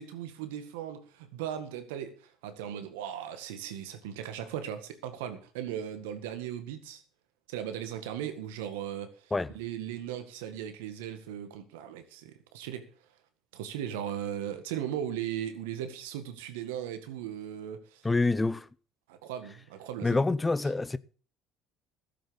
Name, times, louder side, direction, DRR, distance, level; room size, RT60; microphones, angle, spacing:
voice 1, 0.0-7.0 7.5-12.9 13.5-18.1 19.1-20.2, right 10 dB, 85° right, 1.8 m, -38 dB
voice 2, 18.0-18.7 20.0-21.0, left 3 dB, 20° left, 0.8 m, -26 dB
14.0 x 7.8 x 7.1 m
hypercardioid pair, 65°, 0 cm